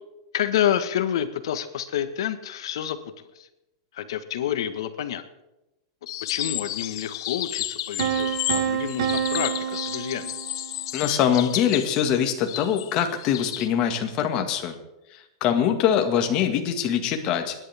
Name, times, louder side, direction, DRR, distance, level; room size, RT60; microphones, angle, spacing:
voice 1, 0.3-3.5 3.9-5.2 6.3-10.3, left 10 dB, 75° left, 10 dB, 1.4 m, -28 dB
sound 1, 6.1-13.7, left 14 dB, 60° left, 0.8 m, -32 dB
Piano, 8.0-10.9, right 8 dB, 75° right, 1.5 m, -28 dB
voice 2, 10.9-14.8 15.4-17.5, left 9 dB, 35° left, 5 dB, 1.8 m, -23 dB
26.5 x 11.0 x 3.5 m, 0.94 s
supercardioid pair, 160°, 3 cm